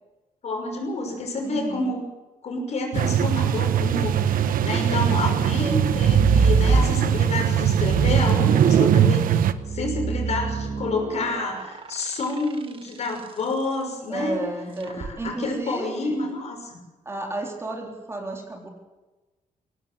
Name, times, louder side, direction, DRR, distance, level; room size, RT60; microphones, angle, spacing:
voice 1, 0.4-2.0 2.4-14.4 14.9-16.8, left 2 dB, 50° left, 3 dB, 6.1 m, -29 dB
voice 2, 1.4-1.9 5.6-6.0 14.1-16.2 17.1-18.7, right 2 dB, 20° right, 1 dB, 3.8 m, -33 dB
sound 1, 2.9-9.5, right 9 dB, 85° right, 1.0 m, -20 dB
sound 2, 5.9-7.3 7.8-13.3 14.8-15.1, right 4 dB, 40° right, 1.7 m, -26 dB
21.5 x 18.0 x 8.0 m, 1.1 s
wide cardioid pair, 145°, 14 cm